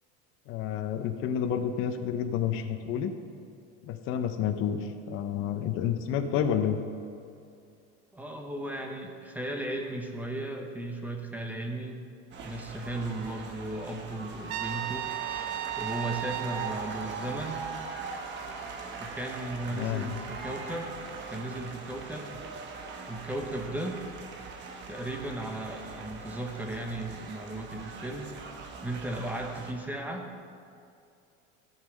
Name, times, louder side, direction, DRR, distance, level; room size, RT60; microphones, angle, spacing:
voice 1, 0.5-3.1 3.8-6.8 19.7-20.2, left 8 dB, 45° left, 6 dB, 0.7 m, -30 dB
voice 2, 8.1-12.0 12.4-15.1 15.8-17.7 19.0-21.0 21.3-22.4 23.1-24.0 24.9-28.3 28.8-30.3, right 1 dB, 5° right, 2 dB, 0.8 m, -36 dB
sound 1, 12.3-29.7, right 4 dB, 40° right, 1.2 m, -41 dB
Trumpet, 14.5-16.8, right 13 dB, 55° right, 0.5 m, -34 dB
13.5 x 5.6 x 6.4 m, 2.5 s
cardioid pair, 150°, 29 cm